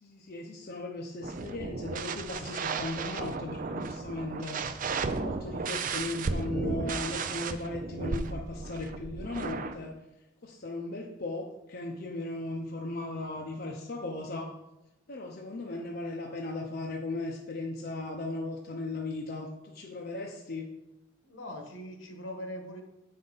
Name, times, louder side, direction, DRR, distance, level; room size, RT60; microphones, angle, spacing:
voice 1, 0.0-4.6 5.1-10.0 10.4-14.5 15.1-20.7, left 2 dB, 50° left, 0 dB, 0.7 m, -37 dB
sound 1, 1.2-9.8, right 4 dB, 45° right, 0.4 m, -34 dB
voice 2, 21.2-22.8, equal, 80° left, 3 dB, 1.3 m, -41 dB
7.7 x 5.4 x 4.0 m, 0.93 s
head